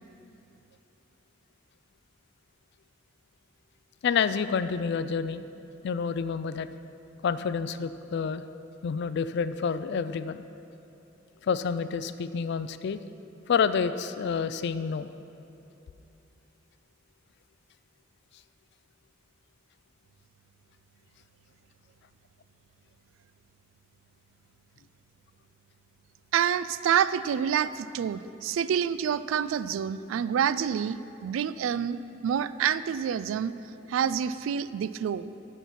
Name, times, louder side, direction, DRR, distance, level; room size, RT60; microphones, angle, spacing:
voice 1, 4.0-5.4 5.8-6.7 7.2-8.4 8.8-10.4 11.4-13.0 13.5-15.1, left 6 dB, 60° left, 13 dB, 0.3 m, -28 dB
voice 2, 26.3-32.0 32.2-33.5 33.9-35.3, right 8 dB, 90° right, 16 dB, 0.3 m, -27 dB
12.0 x 4.7 x 5.8 m, 2.8 s
head